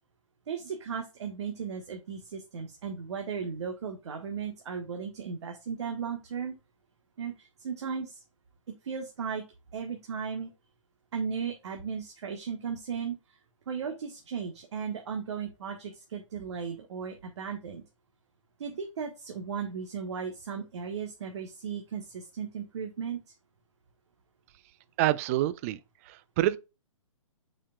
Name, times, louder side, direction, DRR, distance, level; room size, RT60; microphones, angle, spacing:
voice 1, 0.5-6.5 7.2-8.2 8.8-9.4 9.7-10.5 11.1-13.4 13.7-17.8 18.6-23.2, right 6 dB, 55° right, 1.3 m, -36 dB
voice 2, 25.0-25.8 26.1-26.6, right 15 dB, 25° right, 0.4 m, -27 dB
8.4 x 5.0 x 2.3 m
figure-of-eight pair, 125°, 17 cm